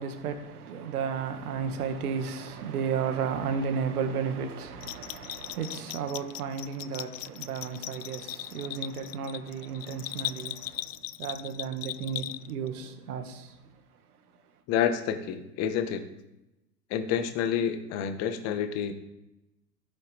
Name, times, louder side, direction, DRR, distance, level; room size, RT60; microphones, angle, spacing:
voice 1, 0.0-13.6, right 6 dB, 65° right, 1.9 m, -33 dB
Bell, 4.8-12.7, left 15 dB, 50° left, 0.5 m, -38 dB
voice 2, 14.7-16.0 16.9-18.9, left 8 dB, 30° left, 1.3 m, -28 dB
12.5 x 9.7 x 3.5 m
hypercardioid pair, 115°, 49 cm